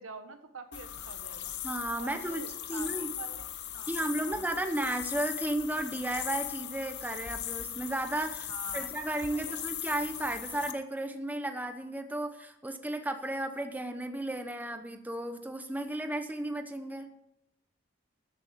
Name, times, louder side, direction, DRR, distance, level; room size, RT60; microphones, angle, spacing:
voice 1, 0.0-1.5 2.0-3.5 3.7-4.6 8.5-8.9 9.3-9.7, right 4 dB, 75° right, 8 dB, 1.5 m, -47 dB
sound 1, 0.7-10.7, left 11 dB, 55° left, 1.0 m, -39 dB
voice 2, 1.6-2.4 2.7-3.1 3.9-17.1, right 1 dB, 10° right, 7 dB, 1.0 m, -34 dB
13.5 x 8.4 x 7.5 m, 0.82 s
head